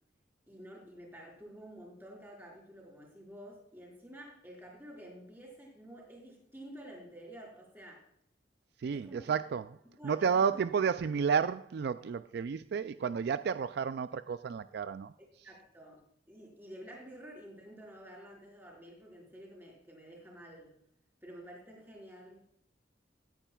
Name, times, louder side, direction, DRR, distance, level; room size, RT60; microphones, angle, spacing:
voice 1, 0.5-8.0 8.9-9.4 10.0-10.6 15.4-20.8 21.2-22.4, equal, 15° right, 5.0 m, -50 dB
voice 2, 8.8-9.6 10.0-15.1, right 6 dB, 65° right, 0.3 m, -31 dB
18.0 x 10.0 x 2.3 m
head